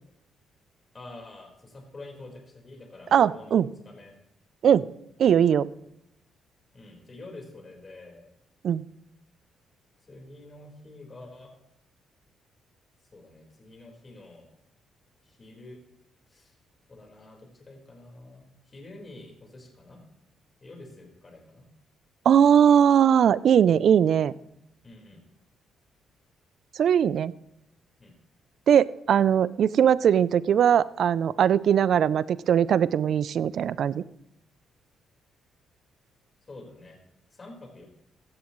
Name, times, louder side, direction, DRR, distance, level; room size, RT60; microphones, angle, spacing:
voice 1, 0.9-4.1 6.7-8.3 10.0-11.5 13.1-14.5 15.2-15.8 16.3-16.6 16.9-20.0 20.6-21.7 24.8-25.2 28.0-28.1 36.4-37.0 37.3-37.9, left 2 dB, 30° left, 1 dB, 4.5 m, -47 dB
voice 2, 3.1-3.7 4.6-4.9 5.2-5.7 8.6-8.8 22.3-24.3 26.8-27.3 28.7-34.0, right 8 dB, 65° right, 18 dB, 0.4 m, -20 dB
16.0 x 12.5 x 3.1 m, 0.80 s
cardioid pair, 90°, 0 cm